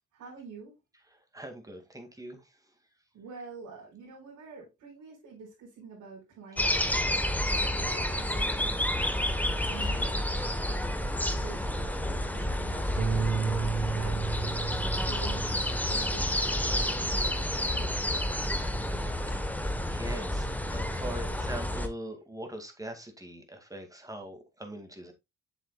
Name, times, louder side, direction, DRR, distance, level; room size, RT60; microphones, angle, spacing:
voice 1, 0.1-0.7 3.1-7.4 7.8-9.0 9.6-10.4 11.0-13.5 13.9-18.5, right 5 dB, 75° right, 4.2 m, -47 dB
voice 2, 1.3-2.5 9.3-10.2 12.4-12.5 19.0-19.5 19.9-25.1, right 1 dB, 10° right, 2.1 m, -42 dB
sound 1, 6.6-21.9, left 1 dB, 5° left, 1.1 m, -30 dB
Bass guitar, 13.0-17.4 17.8-19.2, right 6 dB, 45° right, 0.9 m, -35 dB
7.5 x 7.0 x 2.3 m
cardioid pair, 90°, 30 cm